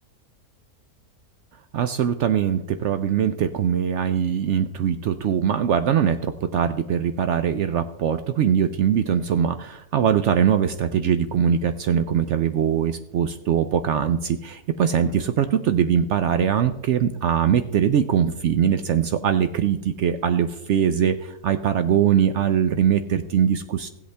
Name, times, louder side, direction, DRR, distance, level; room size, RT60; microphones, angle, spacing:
voice 1, 1.7-23.9, right 8 dB, 70° right, 9 dB, 0.7 m, -22 dB
15.5 x 8.0 x 3.3 m, 0.85 s
omnidirectional pair, 1.6 m